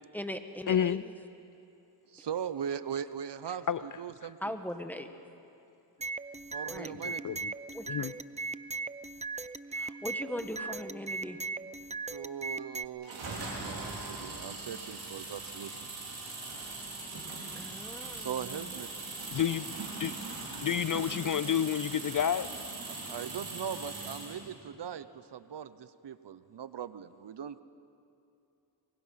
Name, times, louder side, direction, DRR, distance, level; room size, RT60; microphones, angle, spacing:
voice 1, 0.1-1.1 4.4-5.1 6.7-6.9 7.7-8.0 9.7-11.4 17.5-18.7 20.0-20.1, left 1 dB, 5° left, 7 dB, 1.6 m, -40 dB
voice 2, 0.7-1.0 3.7-3.8 7.0-7.5 7.9-8.1 19.3-20.1 20.6-22.5, left 9 dB, 45° left, 15 dB, 0.5 m, -30 dB
voice 3, 2.1-4.5 6.5-7.4 12.1-15.9 18.2-18.9 22.9-27.6, right 8 dB, 65° right, 14 dB, 0.8 m, -40 dB
sound 1, 6.0-12.9, right 4 dB, 15° right, 0.5 m, -38 dB
sound 2, 13.0-24.4, right 3 dB, 85° right, 4.7 m, -40 dB
24.5 x 23.0 x 5.7 m, 2.7 s
cardioid pair, 55°, 45 cm